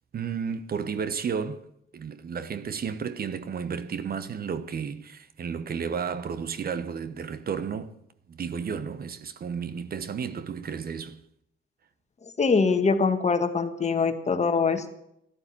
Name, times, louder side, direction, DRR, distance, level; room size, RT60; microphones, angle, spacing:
voice 1, 0.1-1.7 1.9-8.0 8.3-11.2, right 6 dB, 50° right, 1.1 m, -32 dB
voice 2, 12.4-14.9, left 4 dB, 35° left, 1.6 m, -23 dB
13.0 x 11.5 x 8.8 m
cardioid pair, 90°, 20 cm